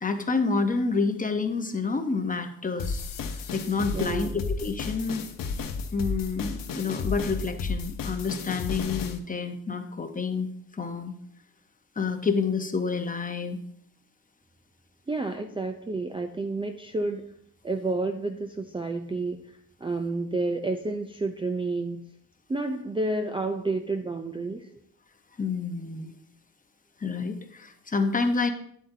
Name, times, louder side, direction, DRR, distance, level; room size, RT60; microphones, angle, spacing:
voice 1, 0.0-3.0 3.3-5.2 5.9-11.2 12.0-13.6 25.4-26.1 27.0-28.5, left 4 dB, 25° left, 7 dB, 0.8 m, -28 dB
sound 1, 2.8-9.2, left 4 dB, 70° left, 0.8 m, -33 dB
voice 2, 3.9-4.4 15.1-17.2 17.6-19.4 19.8-22.0 22.5-24.7, right 2 dB, 15° right, 5 dB, 0.4 m, -30 dB
9.2 x 7.7 x 2.7 m, 0.69 s
cardioid pair, 110°, 35 cm